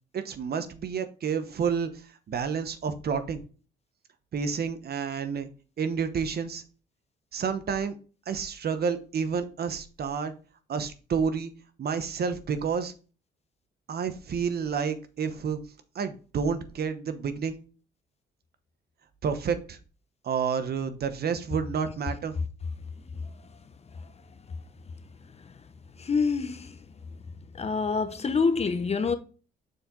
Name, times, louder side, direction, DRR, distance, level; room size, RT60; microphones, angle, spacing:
voice 1, 0.1-1.9 2.3-3.4 4.3-5.5 5.8-6.6 7.3-8.0 8.3-10.3 10.7-11.5 11.8-12.9 13.9-15.6 15.9-17.5 19.2-19.8 20.2-22.4, right 6 dB, 50° right, 0.9 m, -29 dB
voice 2, 23.1-23.6 23.9-24.1 24.5-24.6 25.3-25.6 26.0-26.9 27.5-29.2, left 5 dB, 30° left, 0.7 m, -28 dB
6.5 x 4.6 x 3.7 m
cardioid pair, 90°, 20 cm